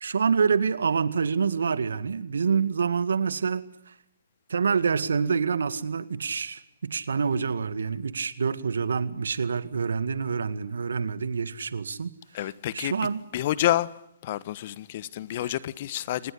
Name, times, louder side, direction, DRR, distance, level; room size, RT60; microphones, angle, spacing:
voice 1, 0.0-3.7 4.5-12.1 12.7-13.2, right 5 dB, 70° right, 2.0 m, -26 dB
voice 2, 12.3-12.9 13.3-13.9 14.2-16.3, left 13 dB, 45° left, 1.2 m, -28 dB
28.0 x 20.0 x 9.9 m
hypercardioid pair, 135°, 0 cm